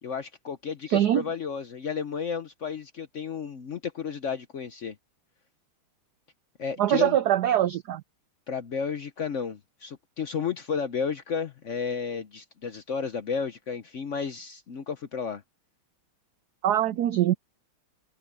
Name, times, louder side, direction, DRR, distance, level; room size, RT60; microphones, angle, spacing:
voice 1, 0.0-5.0 6.6-7.2 8.5-15.4, left 6 dB, 65° left, 0.7 m, -32 dB
voice 2, 0.9-1.2 6.8-8.0 16.6-17.3, right 12 dB, 85° right, 0.8 m, -23 dB
omnidirectional pair, 2.3 m